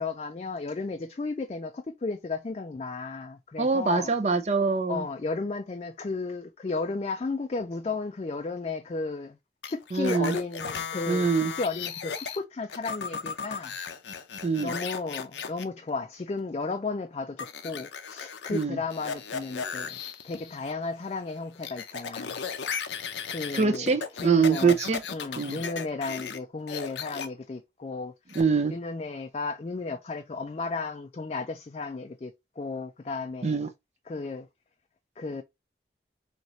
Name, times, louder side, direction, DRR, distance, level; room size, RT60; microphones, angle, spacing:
voice 1, 0.0-4.1 4.9-9.4 9.7-11.3 11.5-13.7 14.6-22.4 23.3-24.8 25.1-28.4 28.7-33.6 34.1-34.5 35.2-35.4, left 3 dB, 35° left, 0.3 m, -34 dB
voice 2, 3.6-5.0 9.9-10.4 11.1-11.5 14.4-14.8 18.5-18.8 23.5-25.0 25.4-25.6 28.4-28.7 33.4-33.7, right 4 dB, 40° right, 0.4 m, -24 dB
sound 1, 9.6-12.4 12.7-15.6 17.4-18.6 18.9-20.7 21.0-26.4 26.7-27.3 28.3-28.4, left 6 dB, 85° left, 0.6 m, -36 dB
4.1 x 3.0 x 2.9 m
head